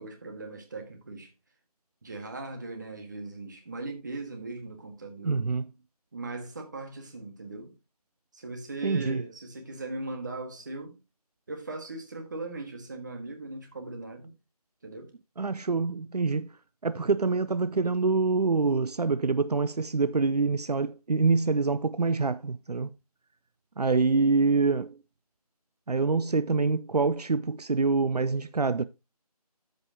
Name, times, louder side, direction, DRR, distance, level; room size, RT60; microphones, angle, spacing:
voice 1, 0.0-1.3 2.0-5.4 6.1-7.7 8.3-10.9 11.5-14.3 14.8-15.1, right 2 dB, 30° right, 1.6 m, -39 dB
voice 2, 5.2-5.7 8.8-9.2 15.4-16.5 16.8-22.9 23.8-25.0 25.9-28.8, right 4 dB, 75° right, 0.6 m, -26 dB
13.5 x 5.2 x 2.8 m
figure-of-eight pair, 165°, 20 cm